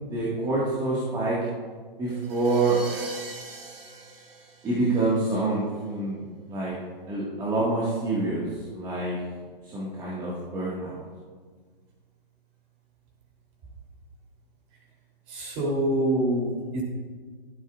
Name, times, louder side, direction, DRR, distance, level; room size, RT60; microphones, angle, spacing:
voice 1, 0.1-1.4 2.0-2.8 4.6-6.2 6.5-6.7 7.1-8.4 8.7-9.2 9.7-11.0, right 2 dB, 15° right, -7 dB, 1.8 m, -26 dB
sound 1, 2.1-5.4, right 3 dB, 80° right, 1.6 m, -40 dB
voice 2, 15.3-16.8, right 1 dB, 30° right, -1 dB, 3.4 m, -26 dB
15.5 x 12.5 x 2.5 m, 1.5 s
figure-of-eight pair, 135°, 29 cm